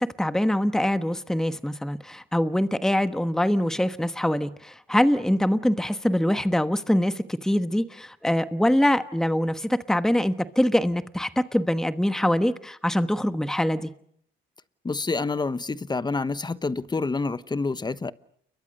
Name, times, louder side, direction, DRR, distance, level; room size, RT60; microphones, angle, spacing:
voice 1, 0.0-13.9, left 1 dB, ahead, 1.1 m, -24 dB
voice 2, 14.8-18.1, left 3 dB, 20° left, 1.0 m, -28 dB
29.5 x 22.5 x 6.6 m
cardioid pair, 90°, 20 cm